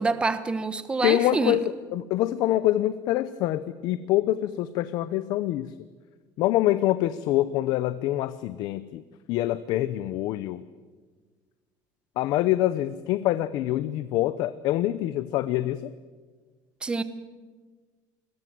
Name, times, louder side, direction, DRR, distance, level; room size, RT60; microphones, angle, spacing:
voice 1, 0.0-1.6 16.8-17.0, right 3 dB, 10° right, 11 dB, 1.1 m, -26 dB
voice 2, 1.0-5.7 6.4-9.0 9.3-10.6 12.2-15.9, left 14 dB, 55° left, 14 dB, 0.8 m, -25 dB
27.5 x 21.5 x 7.8 m, 1.4 s
cardioid pair, 175°, 8 cm